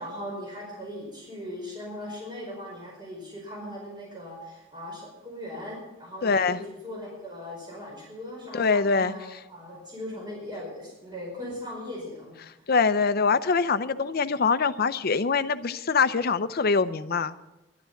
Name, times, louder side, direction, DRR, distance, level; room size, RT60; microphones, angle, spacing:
voice 1, 0.0-12.6, left 1 dB, 25° right, -3 dB, 5.0 m, -39 dB
voice 2, 6.2-6.6 8.5-9.1 12.7-17.3, left 5 dB, 55° left, 13 dB, 0.6 m, -24 dB
11.5 x 11.5 x 7.1 m, 1.0 s
head